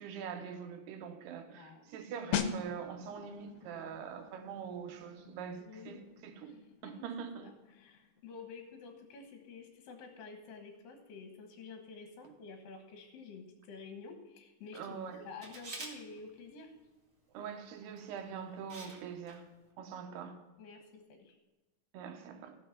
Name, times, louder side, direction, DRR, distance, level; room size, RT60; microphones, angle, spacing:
voice 1, 0.0-6.5 6.8-7.5 14.7-15.3 17.3-19.5 19.8-20.4 21.9-22.6, right 7 dB, 80° right, 3.1 m, -43 dB
voice 2, 1.6-1.9 5.6-6.0 6.4-6.9 7.4-16.7 20.6-21.4, left 4 dB, 65° left, 2.8 m, -50 dB
sound 1, 2.3-12.8 13.1-13.4, left 7 dB, 85° left, 2.8 m, -44 dB
Camera, 15.4-15.9 18.0-18.2 18.7-19.0 19.3-19.4, right 2 dB, 30° right, 1.4 m, -45 dB
15.5 x 6.5 x 5.8 m
omnidirectional pair, 4.6 m